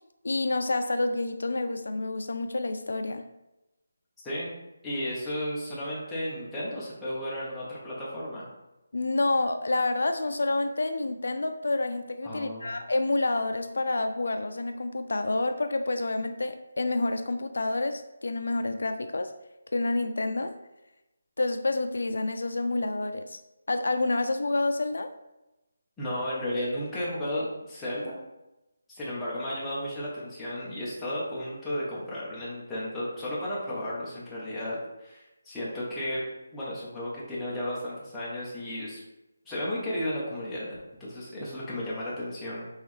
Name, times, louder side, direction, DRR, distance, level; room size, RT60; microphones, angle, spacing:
voice 1, 0.2-3.3 8.9-19.3 19.7-20.5 21.4-23.4 23.7-25.1, left 2 dB, 65° left, 8 dB, 0.3 m, -28 dB
voice 2, 4.8-8.4 12.2-12.7 26.0-28.2 28.9-36.2 36.5-39.0 39.5-42.7, left 1 dB, 5° left, -9 dB, 0.7 m, -34 dB
5.5 x 3.0 x 3.2 m, 0.97 s
hypercardioid pair, 180°, 0 cm